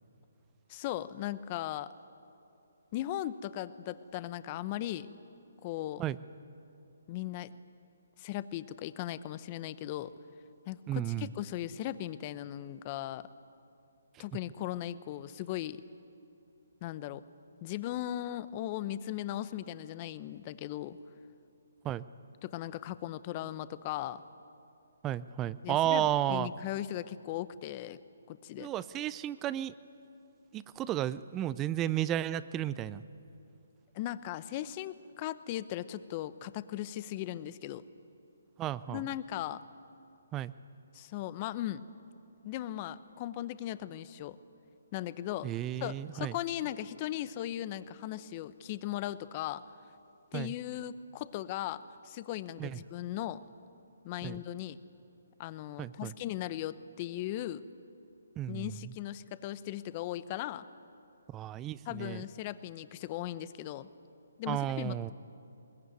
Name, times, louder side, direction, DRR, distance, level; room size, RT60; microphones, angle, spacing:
voice 1, 0.7-1.9 2.9-5.1 5.6-6.0 7.1-7.5 8.2-10.1 10.7-13.3 14.2-15.8 16.8-17.2 17.6-21.0 22.4-24.2 25.6-28.0 28.3-28.7 33.9-37.8 38.9-39.6 40.9-41.9 42.4-44.4 44.9-45.5 45.8-49.6 50.3-53.4 54.0-54.8 55.4-57.6 58.5-60.6 61.9-63.9 64.4-65.1, left 13 dB, 30° left, 15 dB, 0.8 m, -38 dB
voice 2, 10.9-11.3 21.8-22.0 25.0-26.5 28.6-29.7 30.5-33.0 38.6-39.0 40.3-40.5 45.4-46.3 50.3-50.5 52.6-52.8 54.2-54.4 55.8-56.1 58.4-58.7 61.3-62.2 64.5-65.1, right 12 dB, 15° right, 17 dB, 0.5 m, -33 dB
22.0 x 20.0 x 9.4 m, 2.7 s
hypercardioid pair, 150°, 0 cm